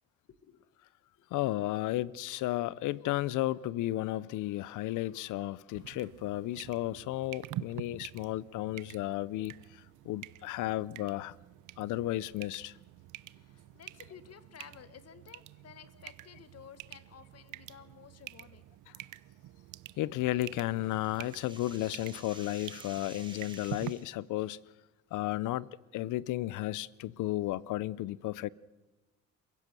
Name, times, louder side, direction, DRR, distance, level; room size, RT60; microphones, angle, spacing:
voice 1, 0.3-0.7 1.2-1.3 13.3-18.7, left 8 dB, 55° left, 1.7 m, -54 dB
voice 2, 1.3-11.4 11.8-12.7 20.0-24.6 25.1-28.5, left 16 dB, 90° left, 0.6 m, -33 dB
sound 1, 5.7-23.9, right 15 dB, 90° right, 0.7 m, -47 dB
sound 2, 20.3-24.1, right 2 dB, 15° right, 4.0 m, -51 dB
28.5 x 16.0 x 6.8 m
cardioid pair, 90°, 30 cm